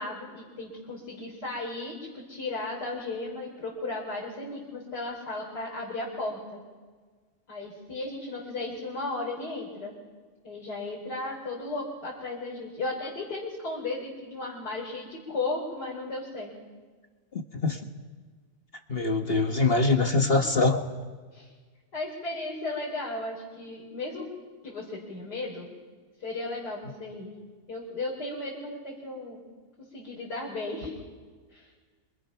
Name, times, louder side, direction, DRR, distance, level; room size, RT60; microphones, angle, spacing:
voice 1, 0.0-6.6 7.5-9.9 10.4-16.5 20.1-20.4 21.3-21.5 21.9-24.3 24.6-25.7 26.2-27.3 27.7-29.4 29.8-31.0 31.5-31.7, left 2 dB, 75° left, -4 dB, 4.7 m, -35 dB
voice 2, 17.3-17.8 18.9-20.8, left 3 dB, 35° left, 5 dB, 1.5 m, -24 dB
28.5 x 26.0 x 5.8 m, 1.5 s
omnidirectional pair, 1.8 m